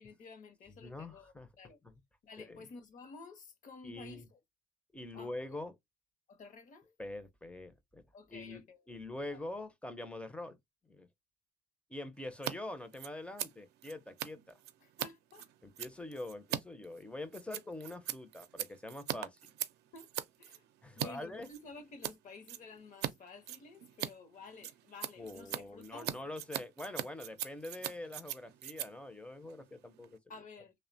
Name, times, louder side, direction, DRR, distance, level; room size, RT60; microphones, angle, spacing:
voice 1, 0.0-1.8 2.2-4.2 5.1-5.3 6.3-6.9 8.1-8.8 9.3-9.4 14.8-15.5 19.9-20.1 20.4-20.7 21.0-26.1 30.3-30.7, left 4 dB, 50° left, 0.7 m, -52 dB
voice 2, 0.8-1.5 1.8-2.0 2.4-2.7 3.8-4.3 4.9-5.8 7.0-8.0 8.3-10.6 10.9-11.1 11.9-14.6 15.6-19.4 20.8-21.5 25.2-30.2, left 2 dB, 5° left, 0.5 m, -44 dB
Scissors, 12.3-12.5 12.8-21.1 21.4-22.2 22.5-23.1 23.4-30.2, right 12 dB, 75° right, 0.5 m, -41 dB
2.8 x 2.1 x 2.6 m
cardioid pair, 110°, 17 cm